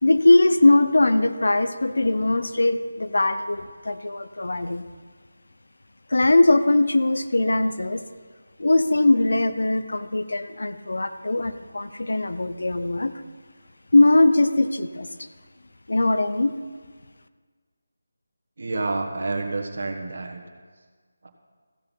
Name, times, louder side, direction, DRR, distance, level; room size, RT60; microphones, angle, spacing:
voice 1, 0.0-4.8 6.1-8.0 8.6-13.1 13.9-15.1 15.9-16.5, left 2 dB, 80° left, 11 dB, 0.7 m, -20 dB
voice 2, 18.6-20.4 21.2-21.3, right 3 dB, 50° right, 3 dB, 1.4 m, -28 dB
15.0 x 6.9 x 5.5 m, 1.5 s
figure-of-eight pair, 180°, 0 cm